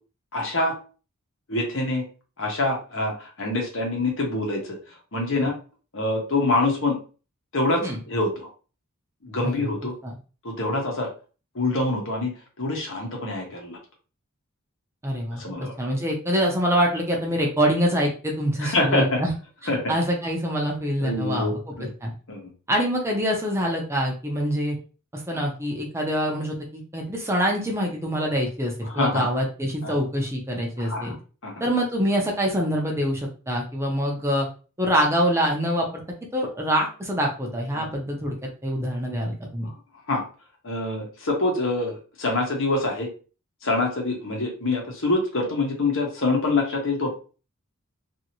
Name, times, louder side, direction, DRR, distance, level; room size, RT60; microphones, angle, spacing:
voice 1, 0.3-0.7 1.5-2.1 2.4-4.6 5.1-5.6 5.9-7.0 7.5-7.8 8.1-8.5 9.2-9.9 10.4-11.1 11.5-12.3 12.6-13.8 15.4-15.7 18.6-19.2 19.7-19.9 21.0-21.9 22.3-22.5 28.9-29.2 29.8-30.0 30.8-31.1 31.4-31.5 37.7-37.8 40.1-40.2 40.6-43.1 43.6-47.1, left 2 dB, 60° left, 1 dB, 1.0 m, -25 dB
voice 2, 15.0-19.3 19.9-22.1 22.7-24.8 25.1-31.2 31.6-34.5 34.8-36.0 36.3-39.7, equal, 10° right, -1 dB, 0.6 m, -25 dB
2.8 x 2.7 x 2.9 m, 0.36 s
head